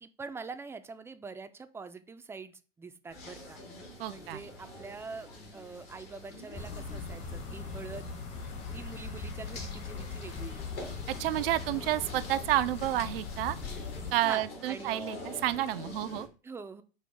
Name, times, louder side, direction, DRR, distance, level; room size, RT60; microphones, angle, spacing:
voice 1, 0.0-3.6 4.1-8.1 8.7-10.6 14.2-15.0 16.4-16.8, right 4 dB, 10° right, 0.3 m, -44 dB
sound 1, 3.1-16.3, left 2 dB, 80° left, 2.0 m, -46 dB
voice 2, 4.0-4.4 11.2-13.6 14.1-16.3, right 14 dB, 75° right, 0.5 m, -30 dB
sound 2, 6.5-14.1, left 4 dB, 45° left, 1.0 m, -40 dB
5.4 x 2.0 x 4.6 m
hypercardioid pair, 90°, 29 cm